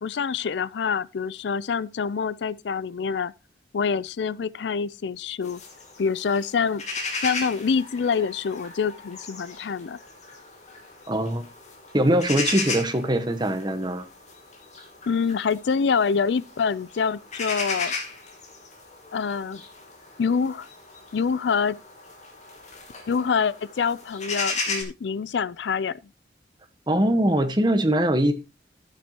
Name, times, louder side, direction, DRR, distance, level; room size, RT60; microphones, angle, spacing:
voice 1, 0.0-3.3 3.7-5.6 6.0-6.8 7.2-10.0 15.1-17.9 19.1-19.6 20.2-20.7 21.1-21.7 23.1-26.0, left 5 dB, 75° left, 0.4 m, -26 dB
sound 1, 5.4-24.8, left 3 dB, 40° left, 2.8 m, -36 dB
voice 2, 11.1-11.5 11.9-14.1 26.9-28.3, right 1 dB, 25° right, 1.1 m, -22 dB
12.5 x 9.2 x 2.9 m
head